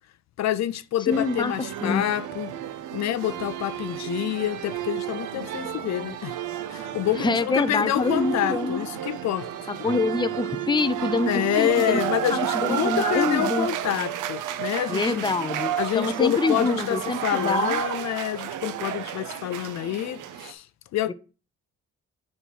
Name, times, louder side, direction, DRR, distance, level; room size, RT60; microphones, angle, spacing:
voice 1, 0.4-2.5 2.9-6.3 6.7-9.7 11.2-15.2 15.8-20.7 20.9-21.1, left 12 dB, 65° left, 0.5 m, -27 dB
voice 2, 1.0-1.5 1.8-2.0 7.2-8.8 9.7-12.0 12.3-13.7 14.9-17.8 21.1-21.2, left 3 dB, 15° left, 0.6 m, -26 dB
sound 1, 1.1-20.5, right 10 dB, 85° right, 0.7 m, -31 dB
7.5 x 4.1 x 4.5 m
cardioid pair, 90°, 30 cm